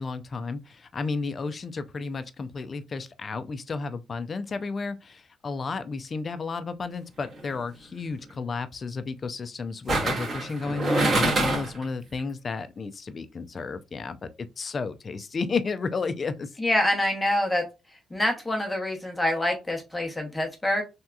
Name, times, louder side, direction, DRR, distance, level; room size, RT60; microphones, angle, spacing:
voice 1, 0.0-14.2 14.6-16.5, left 4 dB, 40° left, 0.4 m, -32 dB
sound 1, 7.2-7.5 9.9-11.8 12.2-12.3, right 2 dB, 45° right, 1.6 m, -25 dB
voice 2, 16.6-17.6 18.1-20.8, left 1 dB, 10° left, 0.9 m, -26 dB
3.4 x 2.8 x 2.3 m
cardioid pair, 90°, 0 cm